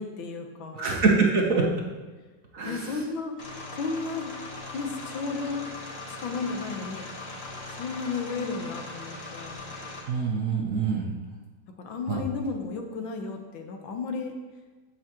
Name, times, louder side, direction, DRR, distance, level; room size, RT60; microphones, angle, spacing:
voice 1, 0.0-0.9 1.5-1.8 2.6-3.3 3.7-4.3 4.7-5.7 6.1-7.1 7.8-9.6 11.8-14.3, left 4 dB, 75° left, 4 dB, 1.8 m, -33 dB
voice 2, 0.7-1.7 2.5-2.9 10.1-11.1 12.1-12.2, right 4 dB, 50° right, -1 dB, 1.2 m, -24 dB
sound 1, 3.4-10.0, left 2 dB, 35° left, 1.5 m, -40 dB
15.5 x 6.2 x 3.0 m, 1.3 s
omnidirectional pair, 2.1 m